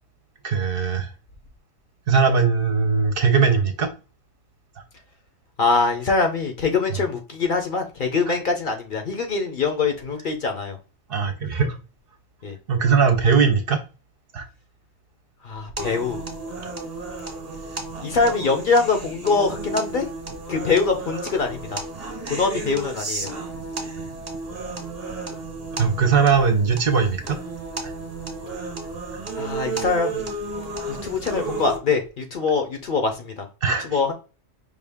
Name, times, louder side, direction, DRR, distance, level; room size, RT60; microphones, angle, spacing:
voice 1, 0.4-1.1 2.1-3.9 8.3-8.4 11.1-11.8 12.7-13.8 14.3-14.4 25.8-27.4 33.6-34.0, right 5 dB, 55° right, 0.8 m, -20 dB
voice 2, 5.6-10.8 12.4-12.6 15.4-16.2 18.0-20.1 20.5-21.8 22.3-23.3 29.3-30.3 30.9-33.5 33.8-34.1, left 4 dB, 50° left, 0.8 m, -23 dB
sound 1, 15.8-31.8, right 3 dB, 35° right, 1.0 m, -33 dB
5.1 x 2.3 x 3.5 m
omnidirectional pair, 1.2 m